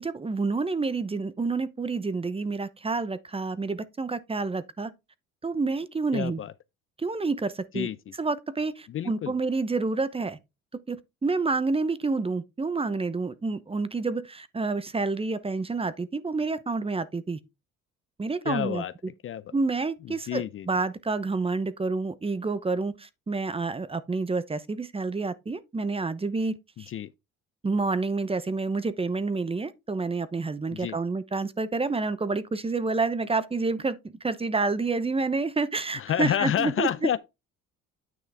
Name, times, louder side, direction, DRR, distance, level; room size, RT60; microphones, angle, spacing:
voice 1, 0.0-4.9 5.4-6.4 7.0-7.9 8.2-10.4 10.9-17.4 18.2-18.8 19.5-26.9 27.6-36.9, right 3 dB, 20° right, 0.8 m, -29 dB
voice 2, 6.1-6.5 7.7-8.0 8.9-9.3 18.5-18.9 19.2-19.4 20.3-20.7 26.9-27.1 30.7-31.0 36.0-37.2, left 10 dB, 40° left, 0.5 m, -29 dB
9.4 x 5.6 x 3.4 m
supercardioid pair, 85°, 32 cm